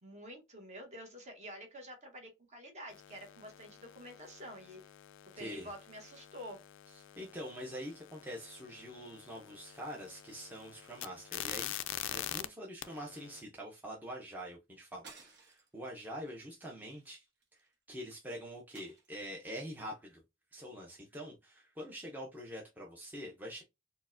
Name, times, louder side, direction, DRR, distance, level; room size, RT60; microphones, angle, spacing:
voice 1, 0.0-4.8 5.3-6.6, equal, 35° right, 1.0 m, -48 dB
sound 1, 2.9-12.5 12.8-13.4, left 12 dB, 65° left, 0.3 m, -46 dB
voice 2, 5.4-5.7 6.9-11.8 12.0-17.2 17.6-20.2 20.5-23.6, equal, 10° right, 0.6 m, -45 dB
sound 2, 15.0-15.8 16.2-16.4 16.8-17.7 18.7-19.5, right 4 dB, 60° right, 0.9 m, -57 dB
4.4 x 2.1 x 2.5 m
head